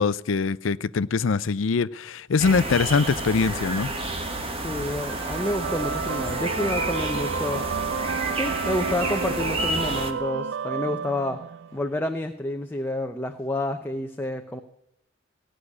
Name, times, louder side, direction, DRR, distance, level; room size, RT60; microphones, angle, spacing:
voice 1, 0.0-3.9, left 5 dB, 75° left, 0.5 m, -23 dB
sound 1, 2.4-10.1, right 2 dB, 30° right, 1.5 m, -30 dB
voice 2, 4.6-7.7 8.3-11.4 11.7-14.6, left 1 dB, 10° left, 0.7 m, -29 dB
sound 2, 4.9-11.9, right 6 dB, 65° right, 0.4 m, -31 dB
17.5 x 6.4 x 9.7 m
head